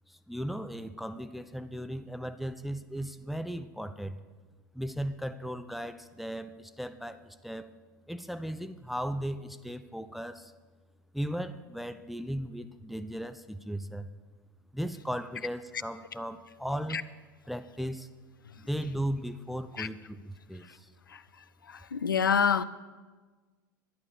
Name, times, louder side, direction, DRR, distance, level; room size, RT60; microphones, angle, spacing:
voice 1, 0.1-4.2 4.7-7.7 8.1-10.5 11.1-14.1 14.7-17.0 17.5-18.1 18.6-20.9, equal, ahead, 0.5 m, -36 dB
voice 2, 21.7-22.6, left 7 dB, 80° left, 0.5 m, -27 dB
11.0 x 10.5 x 6.8 m
figure-of-eight pair, 85°, 11 cm